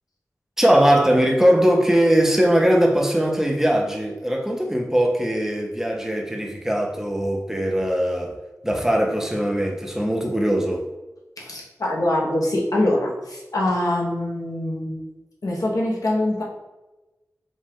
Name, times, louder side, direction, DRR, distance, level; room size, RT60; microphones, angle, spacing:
voice 1, 0.6-8.4 8.6-10.9, equal, 5° right, 2 dB, 0.7 m, -20 dB
voice 2, 11.4-15.0 15.4-16.4, left 1 dB, 85° left, -3 dB, 1.0 m, -24 dB
5.2 x 2.4 x 3.6 m, 1.1 s
wide cardioid pair, 65°, 6 cm